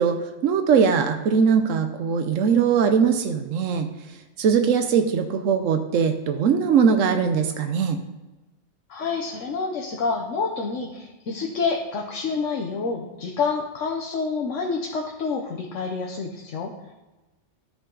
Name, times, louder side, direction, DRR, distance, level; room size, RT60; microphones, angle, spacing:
voice 1, 0.0-3.9 4.4-8.0, right 6 dB, 90° right, 7 dB, 1.1 m, -21 dB
voice 2, 8.9-16.9, left 4 dB, 80° left, 0 dB, 1.2 m, -28 dB
13.5 x 5.2 x 3.8 m, 1.1 s
omnidirectional pair, 1.3 m